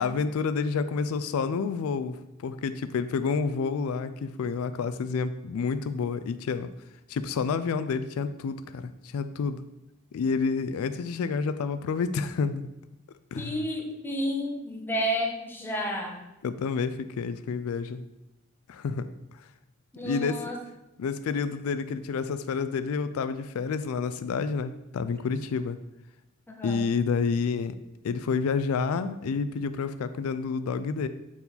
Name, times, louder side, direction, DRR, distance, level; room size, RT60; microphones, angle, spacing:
voice 1, 0.0-6.7 7.1-9.6 10.1-12.6 13.3-13.6 16.4-18.0 18.7-19.5 20.0-20.5 21.0-25.8 26.6-27.7 28.0-31.1, left 5 dB, 75° left, 11 dB, 0.4 m, -29 dB
voice 2, 13.3-16.2 19.9-20.6 26.5-26.8, equal, 10° left, 0 dB, 0.9 m, -31 dB
7.0 x 4.6 x 4.0 m, 0.93 s
head